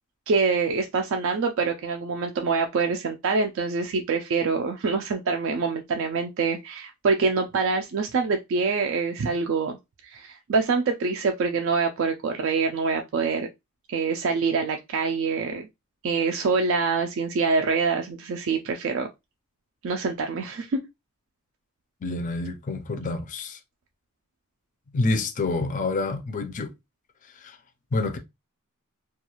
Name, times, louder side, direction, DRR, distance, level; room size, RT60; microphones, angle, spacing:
voice 1, 0.3-9.8 10.0-13.5 13.9-15.7 16.0-19.1 19.8-20.8, right 4 dB, 60° right, 0.3 m, -25 dB
voice 2, 22.0-23.6 24.9-26.7 27.4-27.6 27.9-28.2, left 3 dB, 35° left, 0.4 m, -27 dB
2.3 x 2.3 x 2.9 m
head